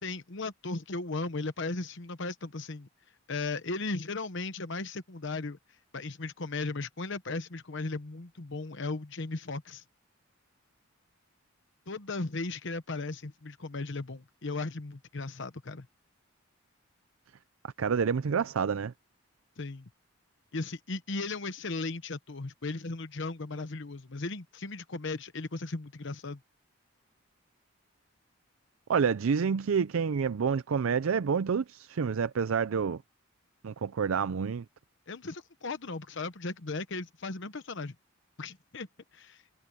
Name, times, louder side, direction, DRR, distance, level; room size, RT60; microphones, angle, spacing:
voice 1, 0.0-2.9 3.3-5.6 5.9-9.8 11.9-15.9 19.6-19.9 20.5-26.4 35.1-37.9 38.4-38.9 39.1-39.4, left 3 dB, 60° left, 1.0 m, -36 dB
voice 2, 17.6-18.9 28.9-33.0 33.6-34.7, right 6 dB, 80° right, 0.5 m, -28 dB
head